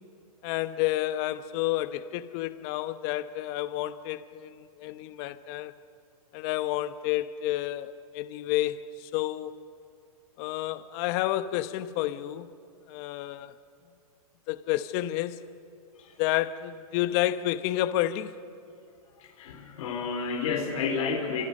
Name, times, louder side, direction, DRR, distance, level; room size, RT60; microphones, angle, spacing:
voice 1, 0.4-5.7 6.3-9.5 10.4-12.5 12.9-13.5 14.5-15.4 16.2-18.4, left 14 dB, 40° left, 1.0 m, -30 dB
voice 2, 19.2-21.4, left 5 dB, 65° left, 3.9 m, -31 dB
29.5 x 26.0 x 6.6 m
hypercardioid pair, 135°, 19 cm